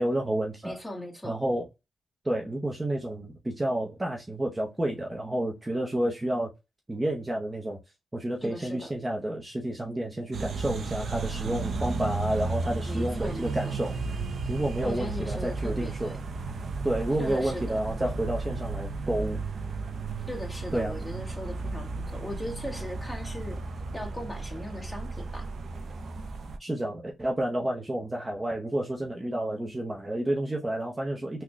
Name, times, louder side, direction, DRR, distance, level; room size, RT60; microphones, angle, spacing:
voice 1, 0.0-0.8 1.2-1.6 2.2-6.5 6.9-7.8 8.1-13.9 14.5-16.1 16.8-19.4 20.7-20.9 26.6-31.4, right 1 dB, 20° right, 0.7 m, -30 dB
voice 2, 0.6-1.4 8.4-8.9 12.9-13.7 14.8-16.2 17.2-17.8 20.3-23.6 23.9-25.5, left 1 dB, 5° left, 1.4 m, -38 dB
sound 1, 10.3-26.6, right 3 dB, 60° right, 0.5 m, -34 dB
3.8 x 2.2 x 3.1 m
cardioid pair, 75°, 0 cm